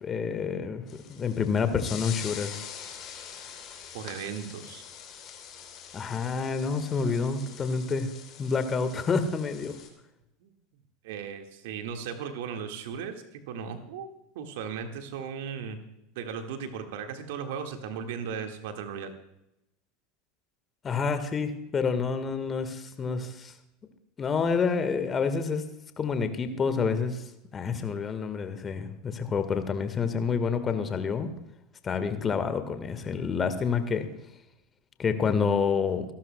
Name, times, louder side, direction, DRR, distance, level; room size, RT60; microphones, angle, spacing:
voice 1, 0.0-0.8 1.1-2.5 5.9-8.1 8.4-9.8 20.8-23.5 24.2-25.6 26.0-27.2 27.5-31.3 31.8-34.1 35.0-36.0, left 5 dB, 25° left, 10 dB, 1.5 m, -28 dB
sound 1, 0.9-9.9, left 8 dB, 40° left, 3.1 m, -44 dB
voice 2, 3.9-4.8 10.4-10.5 11.0-14.1 14.3-15.8 16.1-19.1, right 7 dB, 65° right, 6 dB, 1.7 m, -36 dB
26.5 x 12.0 x 2.2 m, 0.86 s
figure-of-eight pair, 80°, 0 cm